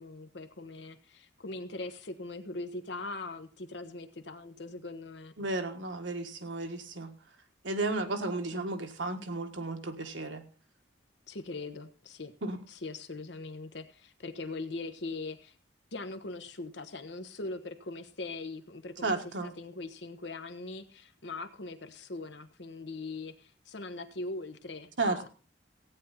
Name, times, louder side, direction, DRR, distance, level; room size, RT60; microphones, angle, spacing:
voice 1, 0.0-5.3 8.5-8.7 11.3-12.3 12.7-15.5 15.9-19.2 19.4-25.3, left 3 dB, 70° left, 9 dB, 1.1 m, -41 dB
voice 2, 5.4-7.1 7.6-10.4 12.4-12.6 19.0-19.5 25.0-25.3, right 2 dB, 85° right, 5 dB, 1.5 m, -33 dB
16.0 x 9.2 x 4.1 m, 0.37 s
head